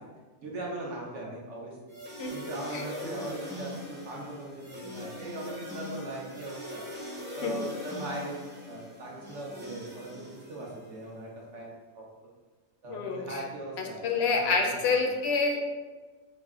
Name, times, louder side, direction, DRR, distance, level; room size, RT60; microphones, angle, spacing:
voice 1, 0.4-1.8 2.3-6.8 7.3-8.4 8.6-12.0 12.8-15.2, right 1 dB, 85° right, -3 dB, 1.2 m, -39 dB
sound 1, 1.9-11.0, left 1 dB, 15° right, 0.5 m, -42 dB
voice 2, 12.9-13.4 14.0-15.6, left 4 dB, 70° left, 2 dB, 0.8 m, -27 dB
4.7 x 2.1 x 3.5 m, 1.3 s
omnidirectional pair, 1.2 m